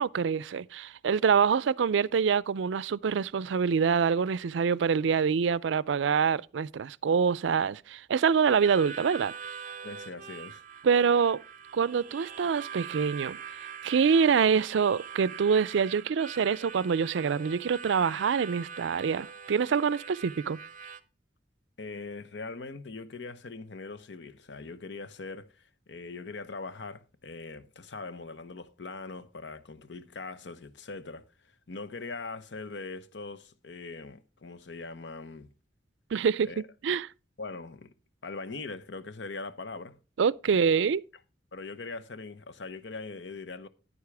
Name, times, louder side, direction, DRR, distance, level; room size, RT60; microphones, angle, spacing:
voice 1, 0.0-9.3 10.8-11.4 11.7-13.4 13.8-20.6 36.1-36.5 36.8-37.1 40.2-41.0, right 6 dB, 80° right, 0.4 m, -25 dB
Harmonica, 8.4-21.0, right 6 dB, 45° right, 0.7 m, -43 dB
voice 2, 9.8-10.6 21.8-35.5 36.4-36.6 37.4-37.9 38.2-40.0 40.4-40.6 41.5-43.7, left 3 dB, 70° left, 0.8 m, -41 dB
9.7 x 9.7 x 3.4 m
head